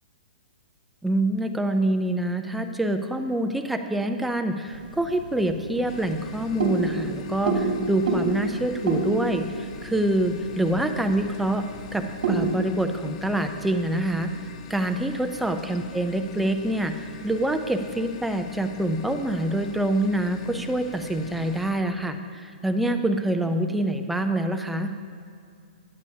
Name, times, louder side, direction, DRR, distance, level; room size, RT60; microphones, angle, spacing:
voice 1, 1.0-11.6 11.9-14.3 14.7-24.9, right 1 dB, ahead, 6 dB, 0.3 m, -26 dB
sound 1, 4.7-12.6, right 4 dB, 75° right, 3.2 m, -30 dB
sound 2, 5.9-21.7, left 5 dB, 40° left, 0.6 m, -43 dB
20.0 x 9.6 x 2.7 m, 2.4 s
hypercardioid pair, 175°, 5 cm